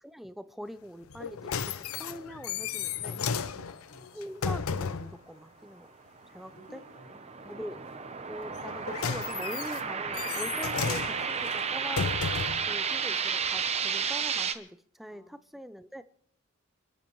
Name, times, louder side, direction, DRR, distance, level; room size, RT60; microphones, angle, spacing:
voice 1, 0.0-3.3 4.1-5.9 6.3-6.8 7.5-7.8 8.3-12.1 12.7-16.0, equal, ahead, 12 dB, 0.5 m, -43 dB
sound 1, 1.1-5.2 8.5-12.7 13.5-13.6, left 6 dB, 85° left, 0.6 m, -34 dB
voice 2, 3.1-4.3 6.5-7.8 15.1-15.3, equal, 60° left, 0 dB, 5.0 m, -54 dB
sound 2, 6.2-14.5, right 6 dB, 30° right, 0.8 m, -32 dB
28.0 x 12.0 x 3.1 m, 0.66 s
head